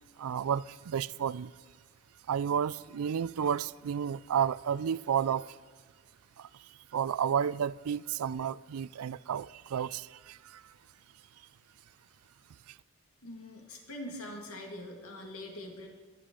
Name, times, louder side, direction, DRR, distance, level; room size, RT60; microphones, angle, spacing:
voice 1, 0.2-1.5 2.3-5.6 6.4-6.5 6.9-10.6, right 8 dB, 85° right, 0.4 m, -31 dB
voice 2, 13.2-15.9, left 1 dB, 80° left, 2.0 m, -43 dB
22.0 x 10.5 x 3.8 m
head